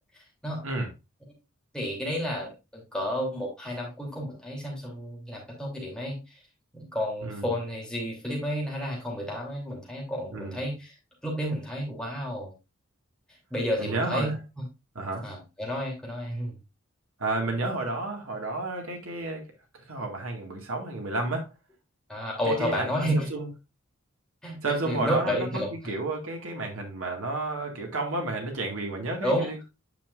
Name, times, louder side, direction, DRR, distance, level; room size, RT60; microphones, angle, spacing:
voice 1, 1.7-6.2 6.7-10.9 11.2-12.5 13.5-14.7 15.2-16.6 22.1-23.3 24.4-25.7 29.2-29.5, equal, 5° left, 2.9 m, -31 dB
voice 2, 13.8-14.4 15.0-15.3 17.2-19.5 19.7-21.5 22.5-23.5 24.6-29.7, right 2 dB, 90° right, 1.9 m, -31 dB
9.0 x 5.6 x 2.5 m
head